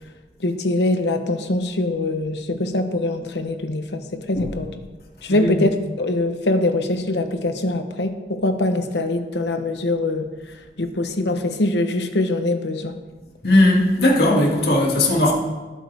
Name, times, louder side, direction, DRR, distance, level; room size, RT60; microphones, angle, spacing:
voice 1, 0.4-4.7 5.2-10.3 10.8-12.9, left 2 dB, 80° left, 7 dB, 1.1 m, -23 dB
voice 2, 5.3-5.6 10.8-10.9 13.4-15.3, left 1 dB, 60° left, -2 dB, 2.5 m, -18 dB
19.0 x 8.8 x 3.5 m, 1.3 s
head